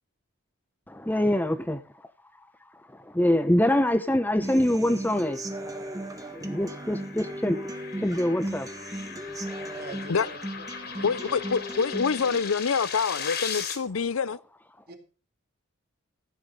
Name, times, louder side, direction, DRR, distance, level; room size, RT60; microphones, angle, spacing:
voice 1, 0.9-1.8 2.9-5.4 6.3-7.6 8.0-8.7, left 1 dB, 10° left, 0.7 m, -24 dB
Human voice / Acoustic guitar, 4.4-12.4, right 1 dB, 15° right, 1.7 m, -37 dB
sound 1, 4.9-13.8, left 6 dB, 50° left, 3.1 m, -39 dB
voice 2, 9.7-11.6 13.5-13.8 14.9-15.0, right 1 dB, 50° right, 3.1 m, -45 dB
voice 3, 11.0-14.4, left 5 dB, 85° left, 0.6 m, -26 dB
15.0 x 9.7 x 5.4 m
head